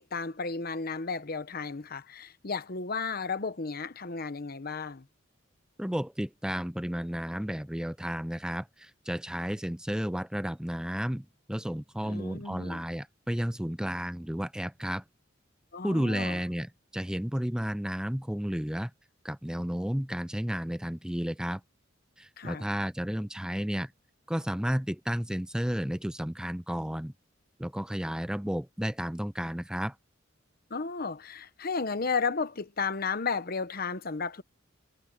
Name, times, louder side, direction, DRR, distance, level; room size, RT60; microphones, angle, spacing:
voice 1, 0.0-5.1 12.0-12.8 15.7-16.4 22.4-22.7 30.7-34.4, left 4 dB, 50° left, 1.0 m, -33 dB
voice 2, 5.8-15.0 15.8-18.9 19.2-21.6 22.2-23.9 24.3-27.1 27.6-29.9, equal, 5° right, 0.5 m, -32 dB
head